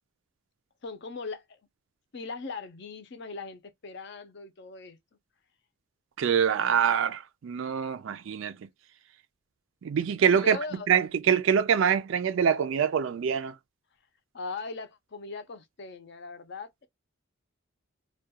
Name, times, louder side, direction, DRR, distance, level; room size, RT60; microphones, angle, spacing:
voice 1, 0.8-1.6 2.1-5.0 10.3-10.9 14.3-16.9, left 4 dB, 55° left, 0.5 m, -39 dB
voice 2, 6.2-8.6 9.8-10.6 10.9-13.5, right 7 dB, 65° right, 0.3 m, -25 dB
2.3 x 2.2 x 2.7 m
head